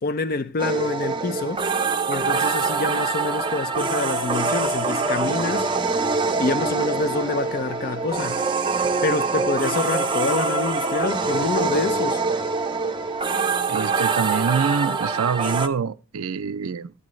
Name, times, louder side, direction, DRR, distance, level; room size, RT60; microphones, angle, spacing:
voice 1, 0.0-1.7 2.1-5.7 6.4-8.4 9.0-12.2, left 3 dB, 40° left, 0.5 m, -26 dB
sound 1, 0.6-15.7, right 4 dB, 20° right, 0.5 m, -24 dB
sound 2, 1.8-14.7, left 4 dB, 20° left, 1.0 m, -45 dB
voice 2, 13.7-16.9, right 6 dB, 75° right, 0.5 m, -25 dB
12.0 x 9.6 x 3.1 m
head